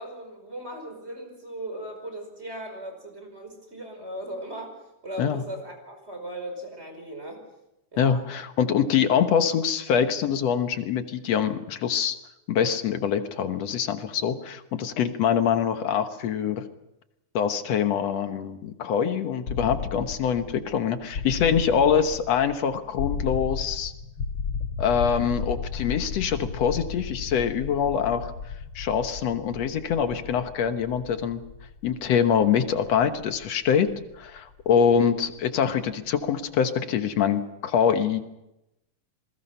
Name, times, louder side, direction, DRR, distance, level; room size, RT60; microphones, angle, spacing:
voice 1, 0.0-7.5 7.9-8.2 34.8-35.1, right 1 dB, 20° right, 4 dB, 5.2 m, -38 dB
voice 2, 8.0-12.2 12.5-16.6 17.3-23.9 24.8-28.3 28.8-31.4 31.8-38.2, left 7 dB, 65° left, 8 dB, 2.2 m, -24 dB
sound 1, 19.5-35.3, left 5 dB, 50° left, 2.0 m, -35 dB
27.5 x 21.5 x 5.6 m, 0.89 s
omnidirectional pair, 3.4 m